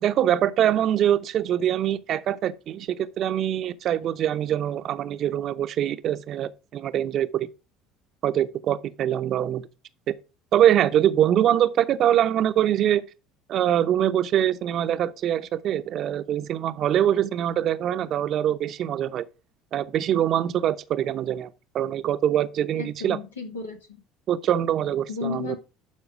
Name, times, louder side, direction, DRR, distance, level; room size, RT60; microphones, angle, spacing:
voice 1, 0.0-7.5 8.2-9.7 10.1-10.2 10.5-13.0 13.5-19.2 19.7-23.2 24.3-25.6, right 11 dB, 50° right, 0.7 m, -23 dB
voice 2, 22.7-24.0 25.1-25.6, left 5 dB, 85° left, 2.0 m, -34 dB
12.0 x 4.8 x 4.8 m
figure-of-eight pair, 65°, 0 cm